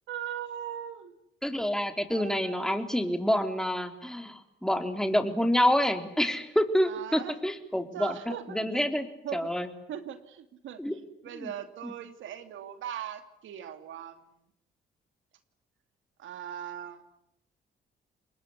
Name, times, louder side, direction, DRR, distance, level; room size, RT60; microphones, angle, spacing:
voice 1, 0.1-1.1 2.1-2.9 6.9-7.4 7.9-8.7 9.2-9.5 9.9-14.2 16.2-17.0, right 10 dB, 75° right, 10 dB, 2.6 m, -40 dB
voice 2, 1.4-8.1 8.5-9.1 9.3-9.7 10.8-10.9 11.3-11.5, equal, 5° left, 7 dB, 3.8 m, -27 dB
27.5 x 21.5 x 10.0 m, 0.76 s
cardioid pair, 90°, 20 cm